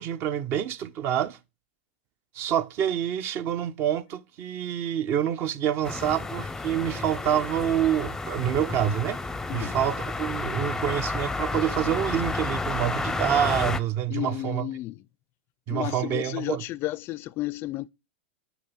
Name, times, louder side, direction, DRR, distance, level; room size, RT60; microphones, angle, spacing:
voice 1, 0.0-1.4 2.3-9.2 9.5-14.6 15.7-16.6, right 10 dB, 40° right, 1.0 m, -27 dB
sound 1, 5.8-13.8, left 3 dB, 5° left, 0.7 m, -31 dB
voice 2, 14.1-15.0 15.7-17.9, left 16 dB, 40° left, 0.4 m, -32 dB
8.5 x 6.2 x 7.2 m
hypercardioid pair, 115°, 6 cm